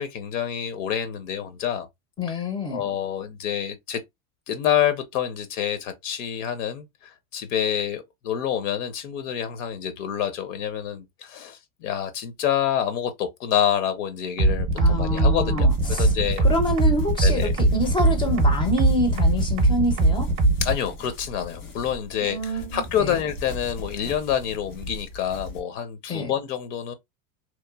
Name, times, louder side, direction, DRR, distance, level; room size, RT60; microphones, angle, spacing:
voice 1, 0.0-1.9 2.3-2.4 2.7-4.0 4.5-16.4 17.2-17.5 20.6-26.9, left 9 dB, 65° left, 0.6 m, -27 dB
voice 2, 2.2-2.8 14.8-16.1 16.4-20.3 22.2-23.2 26.1-26.3, left 1 dB, 15° left, 0.4 m, -27 dB
sound 1, 14.4-20.7, right 2 dB, 30° right, 0.6 m, -20 dB
sound 2, 15.7-25.6, left 2 dB, 90° left, 1.5 m, -40 dB
2.9 x 2.0 x 2.2 m
supercardioid pair, 130°, 41 cm